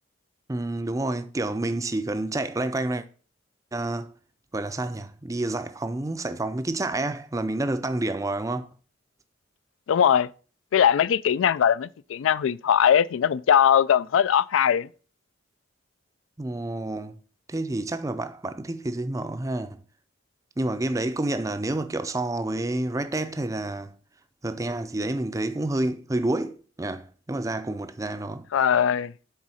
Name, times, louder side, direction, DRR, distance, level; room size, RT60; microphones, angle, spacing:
voice 1, 0.5-3.0 3.7-4.1 4.5-8.7 16.4-17.2 17.5-19.8 20.6-23.9 24.4-28.5, right 2 dB, 15° right, 0.4 m, -29 dB
voice 2, 9.9-10.3 10.7-14.9 28.5-29.1, left 8 dB, 80° left, 0.3 m, -20 dB
8.2 x 3.6 x 6.2 m
head